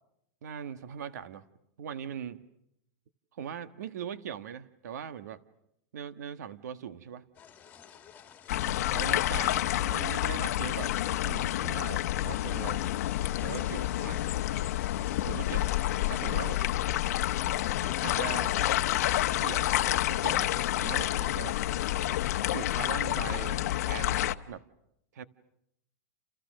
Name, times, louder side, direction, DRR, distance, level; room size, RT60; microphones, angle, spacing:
voice 1, 0.4-1.4 1.8-2.4 3.3-5.4 5.9-7.2 8.9-12.9 13.4-14.3 15.3-15.7 16.1-16.6 18.0-18.5 19.4-20.5 20.8-21.6 22.5-24.7 25.1-25.2, right 8 dB, 75° right, 12 dB, 1.5 m, -40 dB
sound 1, 7.3-23.5, left 8 dB, 15° left, 2.0 m, -51 dB
sound 2, 8.5-24.3, left 14 dB, 65° left, 1.0 m, -29 dB
29.5 x 29.5 x 6.5 m, 0.79 s
supercardioid pair, 155°, 9 cm